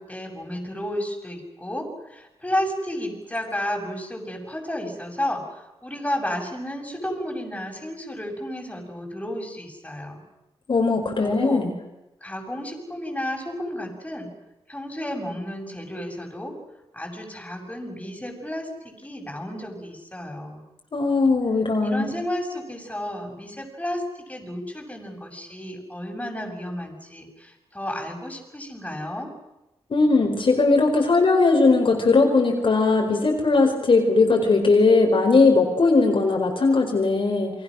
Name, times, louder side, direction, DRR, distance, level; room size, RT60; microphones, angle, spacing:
voice 1, 0.0-5.4 5.8-10.2 11.2-11.7 12.2-14.3 14.7-16.5 16.9-20.6 21.8-24.0 24.3-29.3, left 1 dB, 15° left, 1 dB, 7.2 m, -32 dB
voice 2, 10.7-11.7 20.9-22.1 29.9-37.5, left 3 dB, 55° left, 1 dB, 4.6 m, -19 dB
29.0 x 24.0 x 6.4 m, 0.96 s
cardioid pair, 80°, 10 cm